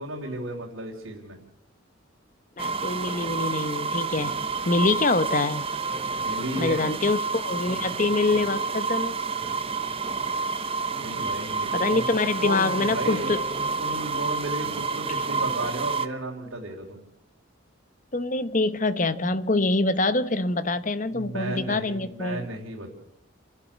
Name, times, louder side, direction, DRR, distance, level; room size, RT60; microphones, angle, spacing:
voice 1, 0.0-1.4 6.2-6.9 11.0-17.0 21.1-22.9, right 1 dB, 75° right, -3 dB, 3.4 m, -34 dB
voice 2, 2.6-4.3 4.6-5.6 6.6-9.2 10.9-11.3 11.7-13.4 18.1-22.5, left 3 dB, 40° left, 13 dB, 1.0 m, -25 dB
sound 1, 2.6-16.1, right 4 dB, 25° right, 0.8 m, -29 dB
29.0 x 11.5 x 8.6 m, 0.81 s
head